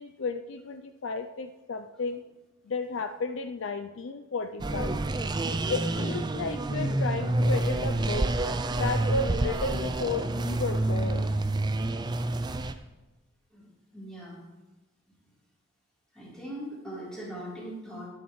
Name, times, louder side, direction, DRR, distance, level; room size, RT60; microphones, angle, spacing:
voice 1, 0.0-2.2 2.6-5.0 5.7-8.4 8.7-11.3, left 3 dB, 60° left, 8 dB, 0.4 m, -33 dB
sound 1, 4.6-12.7, right 2 dB, 20° right, 0.4 m, -28 dB
voice 2, 13.9-14.4 16.1-18.1, right 1 dB, 5° left, -8 dB, 3.6 m, -40 dB
19.5 x 7.2 x 3.2 m, 1.1 s
head